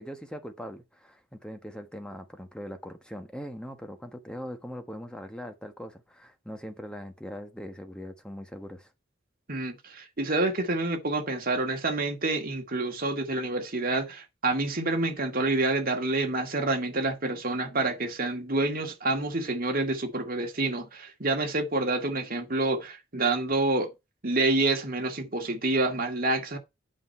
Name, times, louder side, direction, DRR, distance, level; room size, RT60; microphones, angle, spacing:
voice 1, 0.0-8.9, equal, 5° left, 1.3 m, -41 dB
voice 2, 9.5-23.9 24.2-26.6, right 2 dB, 45° right, 2.0 m, -28 dB
8.7 x 5.9 x 4.4 m
head